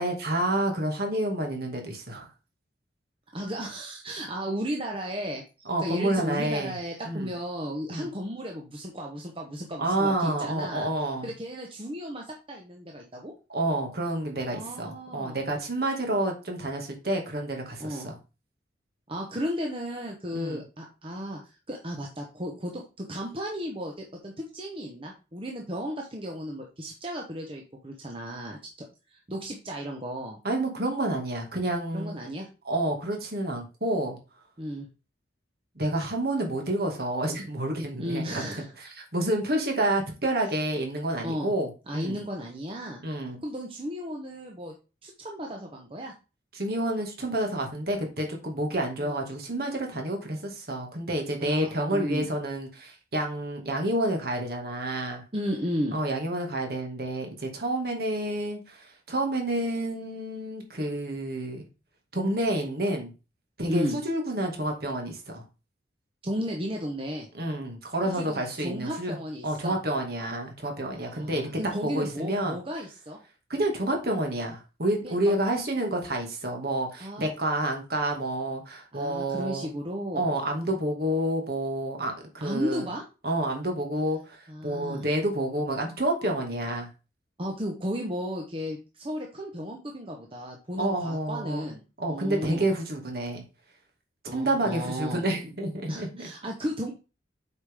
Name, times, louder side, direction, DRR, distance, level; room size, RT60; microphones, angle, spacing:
voice 1, 0.0-2.3 5.7-6.8 7.0-7.3 7.9-8.1 9.8-11.3 13.5-18.2 20.3-20.6 30.4-32.2 32.6-34.2 35.8-38.4 38.8-42.2 43.0-43.4 46.5-55.2 55.9-61.6 62.1-63.1 63.6-65.4 67.3-69.2 69.4-71.5 71.8-72.6 73.5-79.7 80.1-82.9 83.2-86.9 90.8-91.6 92.0-93.4 94.3-96.2, right 1 dB, 55° right, 2 dB, 2.1 m, -29 dB
voice 2, 3.3-10.9 11.2-13.3 14.5-15.4 17.8-18.1 19.1-28.6 29.1-30.4 31.9-32.5 34.6-34.9 38.0-38.7 41.2-41.5 41.9-43.0 43.4-44.7 45.0-46.1 49.0-49.2 51.4-52.3 55.3-56.0 63.7-64.0 66.2-67.3 68.1-69.8 70.9-73.2 75.0-75.3 77.0-77.3 78.9-80.3 82.4-83.0 84.5-85.1 87.4-92.7 94.3-95.2 95.9-96.9, equal, 30° right, 1 dB, 1.1 m, -34 dB
8.0 x 5.1 x 3.6 m, 0.31 s
head